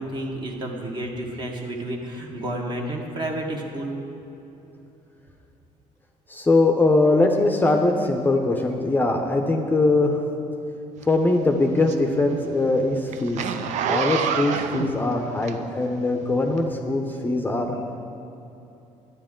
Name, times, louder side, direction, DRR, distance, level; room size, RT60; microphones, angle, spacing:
voice 1, 0.0-4.0, right 1 dB, 35° right, 1 dB, 1.5 m, -31 dB
voice 2, 6.3-10.2 11.1-13.4 13.9-17.8, left 2 dB, 15° left, 2 dB, 0.7 m, -21 dB
Zipper (clothing), 11.0-16.0 16.5-16.6, right 7 dB, 65° right, 0.6 m, -28 dB
11.5 x 9.5 x 3.8 m, 2.9 s
cardioid pair, 110°, 13 cm